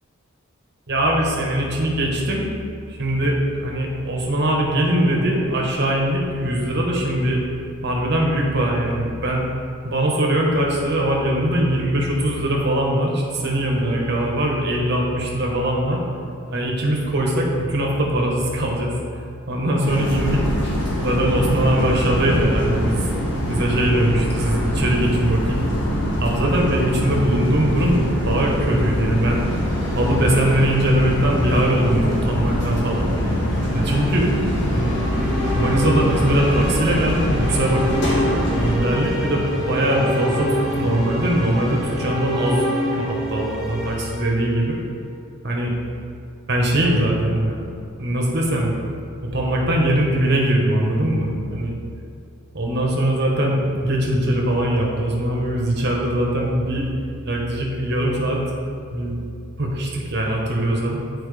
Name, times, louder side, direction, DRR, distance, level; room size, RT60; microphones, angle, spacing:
voice 1, 0.9-2.4 2.9-7.4 7.8-9.4 9.8-16.0 16.5-19.0 19.5-20.4 21.0-23.1 23.5-25.6 26.2-29.4 29.9-33.1 33.7-34.3 34.7-35.0 35.5-37.8 38.6-42.7 42.9-44.8 45.4-45.7 46.5-47.7 48.0-48.7 49.3-51.7 52.5-56.9 57.2-58.4 58.8-59.1 59.6-61.0, right 1 dB, 55° right, -1 dB, 1.1 m, -21 dB
sound 1, 19.8-38.8, equal, 60° left, 1.4 m, -23 dB
sound 2, 29.1-42.1, left 1 dB, 20° left, 1.2 m, -32 dB
sound 3, 34.8-45.0, equal, 5° right, 1.1 m, -28 dB
8.9 x 4.3 x 3.3 m, 2.4 s
head